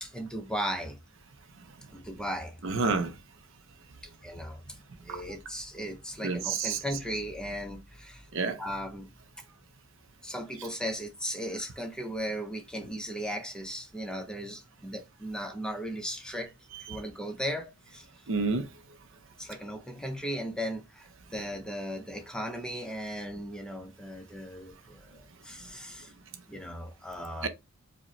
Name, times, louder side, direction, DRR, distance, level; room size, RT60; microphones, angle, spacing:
voice 1, 0.0-1.0 1.9-2.6 4.2-4.8 5.0-8.3 8.6-9.1 10.2-16.5 16.9-18.1 19.4-26.1 26.5-27.5, equal, 5° left, 0.5 m, -37 dB
voice 2, 2.6-3.2 5.1-5.2 6.2-6.8 8.3-8.6 16.7-17.0 18.3-18.7 27.4-27.5, right 4 dB, 60° right, 0.5 m, -29 dB
4.9 x 2.1 x 2.9 m
head